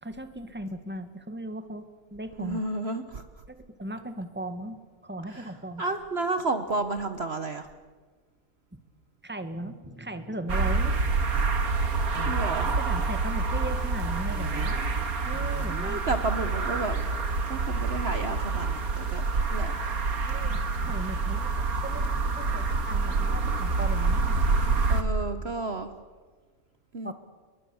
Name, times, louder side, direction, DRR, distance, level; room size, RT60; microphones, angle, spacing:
voice 1, 0.0-2.6 3.5-4.8 5.0-5.8 8.7-8.8 9.2-11.3 12.7-15.0 15.2-16.1 20.2-21.5 21.8-22.1 22.3-24.4 27.0-27.1, right 1 dB, 5° right, 9 dB, 1.7 m, -37 dB
voice 2, 2.4-3.2 5.3-5.5 5.8-7.7 12.2-12.7 15.7-17.0 17.5-19.7 20.4-20.5 24.9-25.9 26.9-27.1, right 3 dB, 45° right, 9 dB, 1.3 m, -31 dB
sound 1, 10.5-25.0, right 4 dB, 75° right, 2.3 m, -27 dB
28.0 x 22.5 x 7.1 m, 1.4 s
omnidirectional pair, 1.5 m